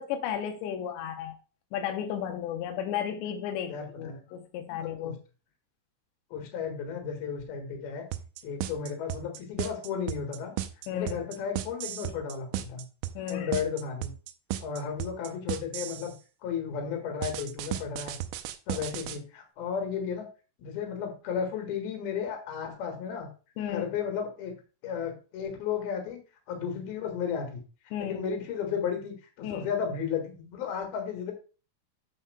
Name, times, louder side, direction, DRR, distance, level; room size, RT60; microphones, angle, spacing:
voice 1, 0.0-1.3 1.7-5.2 10.9-11.1 13.2-13.5 23.6-23.9 27.9-28.2 29.4-29.7, left 9 dB, 90° left, 5 dB, 2.5 m, -34 dB
voice 2, 3.7-4.2 4.7-5.1 6.3-8.0 8.4-10.5 10.9-12.8 13.3-14.1 14.6-16.1 16.4-18.2 18.7-20.2 20.6-23.3 23.7-24.6 24.8-26.2 26.5-27.6 28.0-31.3, left 7 dB, 60° left, 4 dB, 2.8 m, -34 dB
sound 1, 8.1-16.1 17.2-19.2, right 12 dB, 85° right, 3.0 m, -35 dB
9.7 x 7.3 x 2.2 m, 0.35 s
omnidirectional pair, 5.9 m